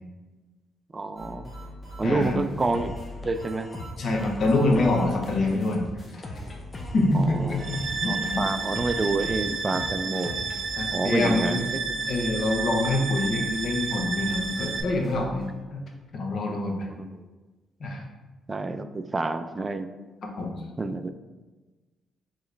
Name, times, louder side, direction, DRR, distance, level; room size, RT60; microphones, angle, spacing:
voice 1, 0.9-1.5 2.0-2.9 3.2-3.7 4.6-4.7 7.1-7.6 8.1-10.4 10.9-11.7 16.8-17.1 18.5-19.9 20.8-21.1, right 3 dB, 25° right, 10 dB, 0.3 m, -28 dB
sound 1, 1.2-5.7 6.0-6.1 6.4-15.6, left 1 dB, 15° left, 1.3 m, -43 dB
voice 2, 2.0-2.4 4.0-5.8 6.9-8.4 10.8-11.6 12.1-15.8 16.1-16.9 17.8-18.0 20.4-20.5, left 2 dB, 60° left, 1 dB, 0.8 m, -25 dB
sound 2, 2.7-10.7, left 1 dB, 30° left, 0.6 m, -40 dB
sound 3, 7.6-14.8, right 4 dB, 50° right, 0.7 m, -31 dB
4.6 x 3.0 x 3.3 m, 1.2 s
cardioid pair, 90°, 0 cm